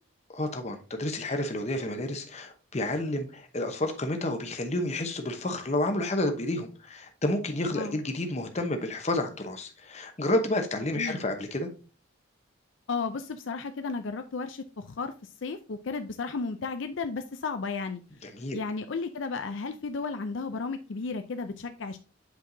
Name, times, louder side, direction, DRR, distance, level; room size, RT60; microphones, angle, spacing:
voice 1, 0.3-11.7 18.4-18.6, left 1 dB, 30° left, 0.9 m, -30 dB
voice 2, 12.9-15.1 15.4-18.0 18.5-22.0, left 4 dB, 65° left, 0.5 m, -33 dB
8.2 x 4.7 x 2.7 m
head